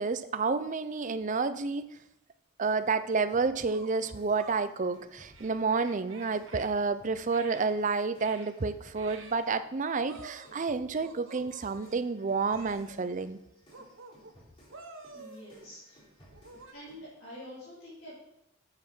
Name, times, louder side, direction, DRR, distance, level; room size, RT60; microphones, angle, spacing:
voice 1, 0.0-1.9 2.6-13.4, right 4 dB, 40° right, 12 dB, 0.5 m, -30 dB
sound 1, 2.6-9.7 10.0-17.1, equal, 30° left, 3.8 m, -59 dB
sound 2, 2.8-2.9 3.7-4.6 5.3-6.7 7.3-7.6 8.2-8.5 9.0-9.5 10.1-10.7 11.0-12.1 12.5-13.1 13.7-14.4 14.7-15.7 16.3-16.7, right 3 dB, 70° right, 1.1 m, -50 dB
voice 2, 15.1-16.0 16.7-18.1, equal, 60° left, -9 dB, 3.5 m, -47 dB
7.7 x 7.4 x 6.1 m, 0.83 s
head